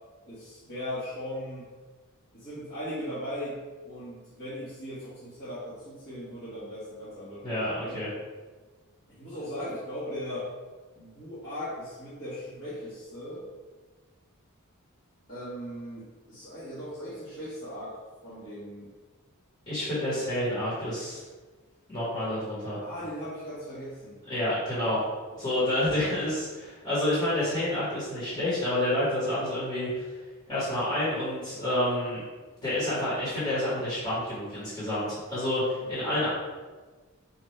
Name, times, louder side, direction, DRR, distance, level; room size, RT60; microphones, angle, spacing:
voice 1, 0.2-1.7 2.3-3.6 3.8-8.0 9.1-10.5 10.9-13.4 15.3-18.0 18.2-18.9 20.1-20.2 22.8-24.2 25.1-25.8 35.8-36.0, equal, 50° left, -13 dB, 1.4 m, -38 dB
voice 2, 7.4-8.1 19.7-21.2 21.9-22.8 24.2-25.0 25.4-30.2 30.5-32.2 32.6-36.3, left 1 dB, 25° left, -10 dB, 1.4 m, -29 dB
4.1 x 2.6 x 3.2 m, 1.3 s
head